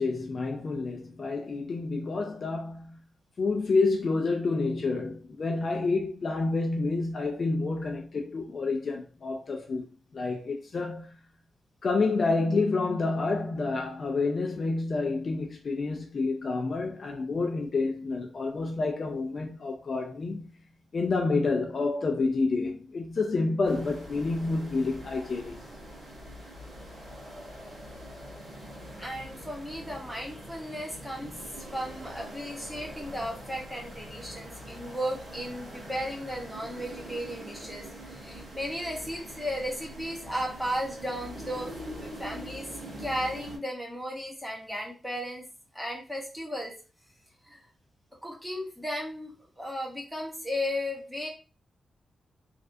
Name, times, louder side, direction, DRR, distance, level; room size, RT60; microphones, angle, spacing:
voice 1, 0.0-3.0 3.4-9.9 10.1-11.1 11.8-20.5 20.9-25.6 31.2-31.3, left 3 dB, 45° left, 0.4 m, -29 dB
sound 1, 23.6-43.6, equal, 80° right, 1.7 m, -44 dB
voice 2, 29.0-31.3 31.7-42.7 43.0-45.4 45.7-46.7 47.5-47.7 48.2-51.3, equal, ahead, 0.8 m, -35 dB
3.2 x 2.4 x 2.5 m
wide cardioid pair, 150°, 0 cm